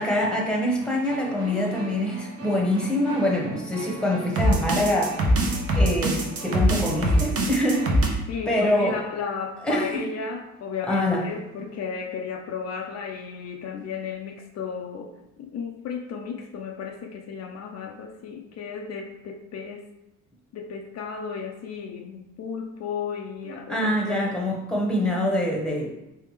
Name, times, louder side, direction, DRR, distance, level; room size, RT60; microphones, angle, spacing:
voice 1, 0.0-5.2 5.8-9.0 9.6-10.0 10.9-11.3 23.5-25.9, left 1 dB, 5° left, -2 dB, 1.0 m, -25 dB
sound 1, 0.8-8.1, right 1 dB, 50° right, 0.9 m, -25 dB
voice 2, 8.3-19.9 20.5-24.4, left 6 dB, 60° left, 2 dB, 0.5 m, -34 dB
3.4 x 3.4 x 3.2 m, 0.93 s
cardioid pair, 90°, 30 cm